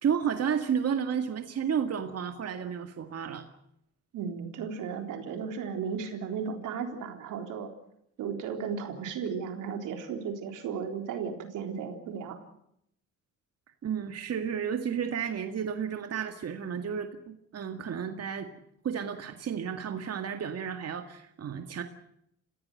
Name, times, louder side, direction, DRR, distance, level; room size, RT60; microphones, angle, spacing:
voice 1, 0.0-3.5 13.8-18.5 18.8-21.8, right 7 dB, 55° right, 6 dB, 2.0 m, -32 dB
voice 2, 4.1-7.7 8.2-12.4, right 6 dB, 90° right, 5 dB, 3.8 m, -35 dB
29.0 x 16.0 x 7.8 m, 0.75 s
cardioid pair, 90°, 30 cm